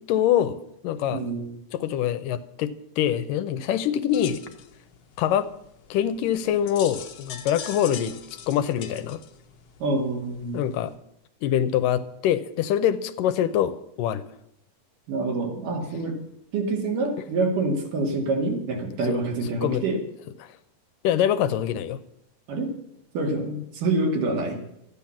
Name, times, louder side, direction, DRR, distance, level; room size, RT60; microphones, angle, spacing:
voice 1, 0.1-0.6 0.8-1.2 1.7-4.4 5.2-5.5 5.9-8.2 8.5-9.2 10.5-10.9 11.4-14.2 19.1-19.2 19.6-19.8 20.4-20.5 21.0-22.0, left 10 dB, 80° left, 12 dB, 2.3 m, -24 dB
voice 2, 1.1-1.5 9.8-10.6 15.1-16.2 16.5-20.0 22.5-22.7 23.1-24.6, right 2 dB, 70° right, 2 dB, 3.8 m, -26 dB
sound 1, 4.1-11.0, left 8 dB, 60° left, 1.8 m, -42 dB
13.5 x 10.0 x 7.2 m, 0.79 s
omnidirectional pair, 3.9 m